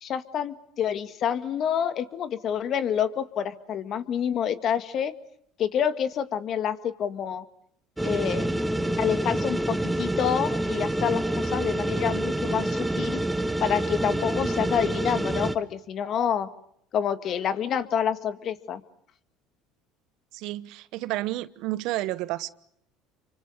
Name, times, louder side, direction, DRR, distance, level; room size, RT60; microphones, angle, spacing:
voice 1, 0.0-5.1 5.6-7.4 8.0-8.5 9.0-13.2 13.6-16.5 16.9-18.8, left 8 dB, 50° left, 1.9 m, -28 dB
sound 1, 8.0-15.6, right 1 dB, 10° right, 1.6 m, -27 dB
voice 2, 20.3-22.5, right 17 dB, 70° right, 1.1 m, -31 dB
29.5 x 25.0 x 6.5 m
supercardioid pair, 90°, 0 cm